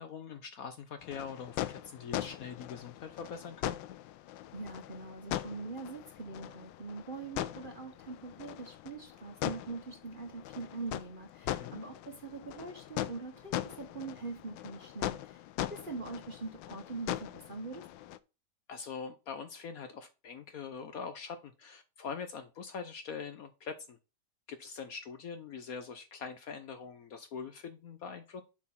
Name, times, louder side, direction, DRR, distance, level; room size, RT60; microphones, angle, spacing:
voice 1, 0.0-3.8 11.4-11.8 18.7-24.0 24.5-28.4, left 6 dB, 60° left, 9 dB, 1.1 m, -43 dB
sound 1, 1.0-18.2, left 13 dB, 85° left, 1.3 m, -40 dB
voice 2, 4.5-15.4 15.7-17.9, right 3 dB, 35° right, 4 dB, 1.0 m, -43 dB
7.3 x 4.3 x 5.7 m, 0.30 s
omnidirectional pair, 2.0 m